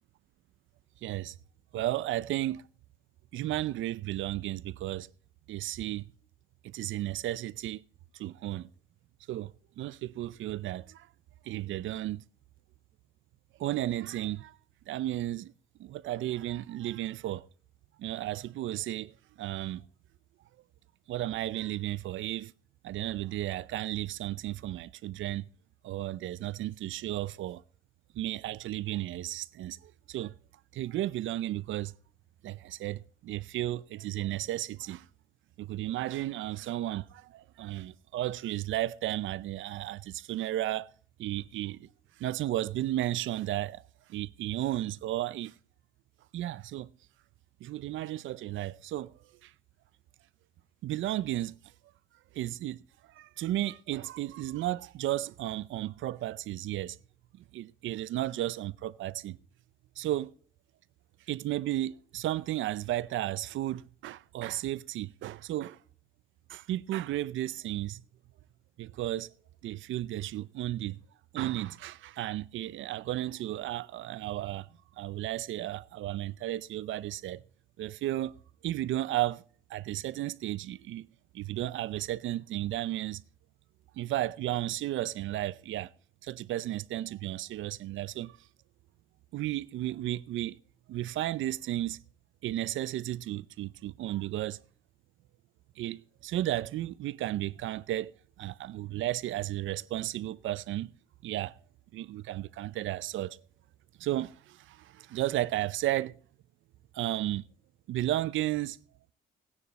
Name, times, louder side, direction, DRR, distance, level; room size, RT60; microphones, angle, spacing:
voice 1, 1.0-1.3 1.7-2.6 3.3-5.1 5.5-6.0 6.6-7.8 8.1-8.7 9.3-11.1 11.4-12.2 13.6-14.6 14.9-15.5 15.8-17.4 18.0-19.8 21.1-22.5 22.8-25.5 25.8-27.6 28.1-30.3 30.7-31.9 32.4-35.1 35.6-40.9 41.2-41.9 42.2-43.8 44.1-45.5 46.3-46.9 47.6-49.1 49.4-49.5 50.8-51.6 52.3-52.8 53.1-57.0 57.4-59.4 60.0-60.3 61.3-65.8 66.5-68.0 68.8-69.3 69.6-71.0 71.3-74.7 75.0-77.4 77.8-78.3 78.6-79.4 79.7-81.1 81.3-83.2 84.0-85.9 86.2-88.4 89.3-90.6 90.9-92.0 92.4-94.6 95.8-98.1 98.4-100.9 101.2-101.6 101.9-103.4 104.0-106.2 106.9-107.4 107.9-108.8, right 14 dB, 80° right, 0.6 m, -34 dB
17.0 x 9.8 x 4.2 m
cardioid pair, 90°, 20 cm